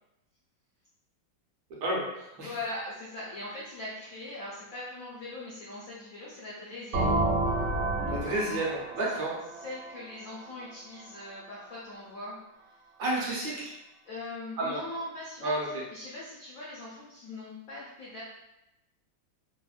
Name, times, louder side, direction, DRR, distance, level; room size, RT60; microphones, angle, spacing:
voice 1, 2.4-7.2 9.1-12.7 14.0-18.2, left 2 dB, 80° left, -7 dB, 0.7 m, -41 dB
sound 1, 6.9-10.7, right 2 dB, 85° right, 1.5 m, -30 dB
voice 2, 8.0-9.3 13.0-13.7 14.6-14.8 15.4-15.7, right 1 dB, 70° right, -5 dB, 1.3 m, -30 dB
3.4 x 2.0 x 2.3 m, 0.90 s
omnidirectional pair, 2.1 m